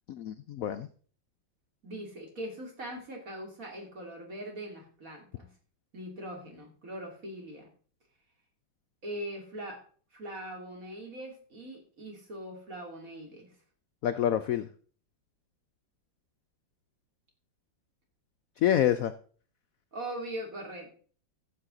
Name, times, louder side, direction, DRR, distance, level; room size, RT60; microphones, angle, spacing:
voice 1, 0.1-0.9 14.0-14.7 18.6-19.1, left 11 dB, 75° left, 10 dB, 0.8 m, -27 dB
voice 2, 1.8-5.5 5.9-7.7 9.0-9.8 10.1-13.5 19.9-20.9, right 1 dB, 45° right, 1 dB, 3.3 m, -41 dB
14.5 x 7.5 x 3.8 m, 0.44 s
omnidirectional pair, 2.1 m